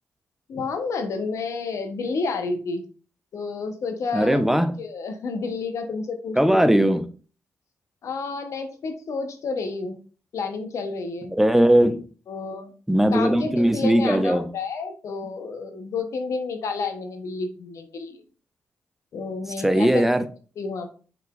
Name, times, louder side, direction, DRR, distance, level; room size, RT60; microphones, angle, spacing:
voice 1, 0.5-2.8 3.3-4.4 4.8-6.6 8.0-10.0 10.3-11.4 12.3-12.7 13.1-18.2 19.1-20.0 20.6-20.9, left 4 dB, 70° left, 7 dB, 0.7 m, -30 dB
voice 2, 4.1-4.7 6.4-7.1 11.3-12.1 12.9-14.4 19.6-20.3, right 1 dB, 5° right, 9 dB, 0.6 m, -19 dB
5.5 x 4.0 x 2.3 m, 0.38 s
supercardioid pair, 45°, 5 cm